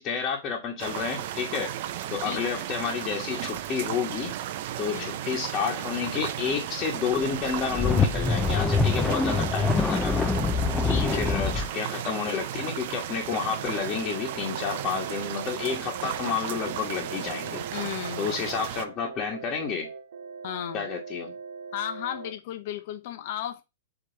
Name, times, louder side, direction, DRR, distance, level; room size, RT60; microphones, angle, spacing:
voice 1, 0.0-1.7 2.1-4.3 4.8-10.3 11.0-17.6 18.2-19.9 20.7-21.3, left 6 dB, 25° left, 1.5 m, -30 dB
sound 1, 0.8-18.8, right 12 dB, 50° right, 0.6 m, -35 dB
voice 2, 4.9-5.2 10.8-11.4 17.7-18.3 20.4-20.9 21.7-23.6, left 11 dB, 50° left, 1.0 m, -35 dB
sound 2, 7.4-11.7, left 4 dB, 10° left, 0.6 m, -25 dB
sound 3, 13.6-22.3, right 4 dB, 70° right, 1.7 m, -41 dB
7.8 x 3.2 x 4.1 m
hypercardioid pair, 155°, 0 cm